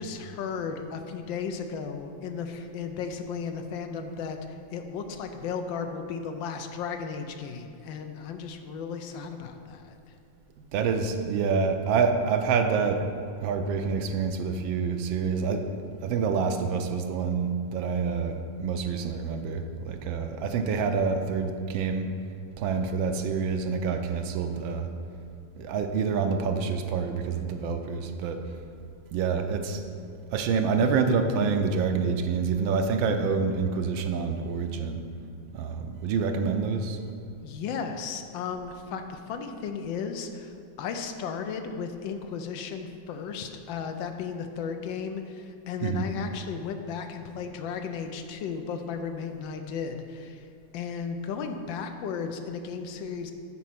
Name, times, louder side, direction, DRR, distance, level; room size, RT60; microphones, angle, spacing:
voice 1, 0.0-10.0 37.4-50.5 50.7-53.3, left 6 dB, 75° left, 6 dB, 1.3 m, -35 dB
voice 2, 10.7-13.0 13.4-15.7 16.0-22.1 22.6-24.9 25.5-28.4 29.1-29.8 30.3-35.0 35.5-37.0 45.8-46.1, right 5 dB, 80° right, 6 dB, 1.4 m, -27 dB
8.4 x 4.5 x 5.8 m, 2.5 s
omnidirectional pair, 2.1 m